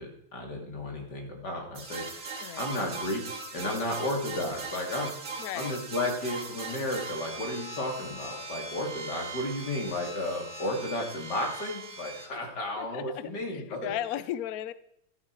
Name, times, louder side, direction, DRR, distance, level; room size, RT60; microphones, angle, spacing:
voice 1, 0.0-3.2 3.5-5.2 5.5-14.0, left 1 dB, 50° left, 1 dB, 3.3 m, -33 dB
sound 1, 1.8-12.3, right 3 dB, 75° right, 3.3 m, -40 dB
voice 2, 2.4-2.7 5.4-5.8 12.3-12.4 12.8-14.7, left 12 dB, 85° left, 16 dB, 0.8 m, -36 dB
13.5 x 11.5 x 4.7 m, 0.77 s
omnidirectional pair, 2.3 m